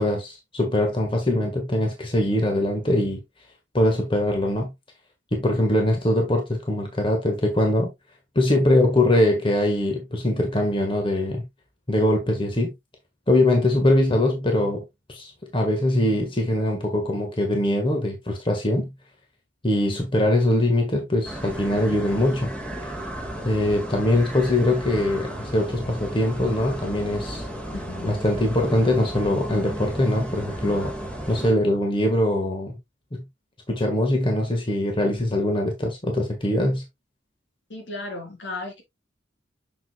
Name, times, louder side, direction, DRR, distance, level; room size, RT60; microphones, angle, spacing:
voice 1, 0.0-3.2 3.7-4.7 5.3-7.9 8.3-11.4 11.9-12.7 13.3-14.8 15.1-18.9 19.6-22.5 23.4-27.5 28.0-30.9 31.3-32.8 33.1-33.2 33.7-36.8, left 1 dB, 30° left, 1.5 m, -22 dB
sound 1, 21.2-31.5, equal, 5° left, 1.8 m, -34 dB
voice 2, 27.7-28.1 37.7-38.8, left 2 dB, 75° left, 3.5 m, -35 dB
7.3 x 6.7 x 2.3 m
head